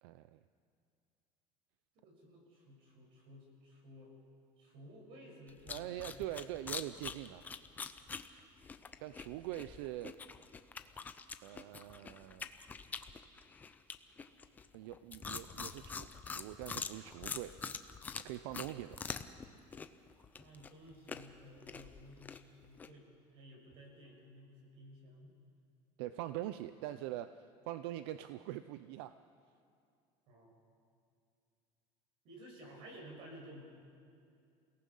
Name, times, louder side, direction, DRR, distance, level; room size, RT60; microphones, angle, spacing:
voice 1, 0.0-0.4 5.7-7.4 9.0-10.1 11.4-12.5 14.7-17.5 18.1-19.0 26.0-29.1, right 14 dB, 80° right, 12 dB, 0.6 m, -43 dB
voice 2, 1.9-4.1 4.6-6.2 19.5-19.6 20.4-23.1 23.3-25.3 30.3-30.6 32.2-33.7, equal, 45° right, 0 dB, 5.8 m, -55 dB
sound 1, 5.5-19.4 19.7-22.9, left 5 dB, 15° left, 0.6 m, -45 dB
28.5 x 18.0 x 5.6 m, 2.5 s
cardioid pair, 180°, 13 cm